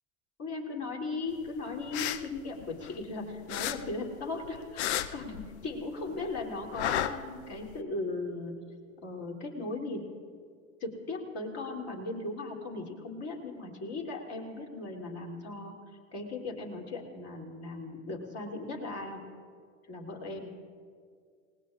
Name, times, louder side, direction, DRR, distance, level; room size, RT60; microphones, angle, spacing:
voice 1, 0.4-8.5 9.0-10.1 10.8-15.7 16.1-19.2 19.9-20.5, left 3 dB, 35° left, 1 dB, 3.2 m, -37 dB
sound 1, 1.7-3.1 3.5-5.9 6.1-7.7, left 11 dB, 55° left, 0.7 m, -33 dB
28.5 x 19.0 x 2.5 m, 2.1 s
figure-of-eight pair, 80°, 41 cm